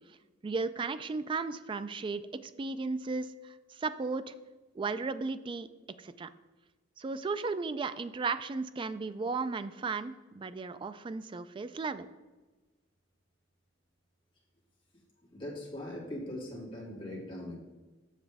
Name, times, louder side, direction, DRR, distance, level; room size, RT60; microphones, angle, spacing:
voice 1, 0.4-4.3 4.7-5.7 6.0-6.3 7.0-12.1, right 4 dB, 25° right, 12 dB, 0.3 m, -35 dB
voice 2, 15.3-17.6, left 1 dB, 30° left, -5 dB, 2.3 m, -40 dB
7.3 x 6.8 x 3.4 m, 1.2 s
head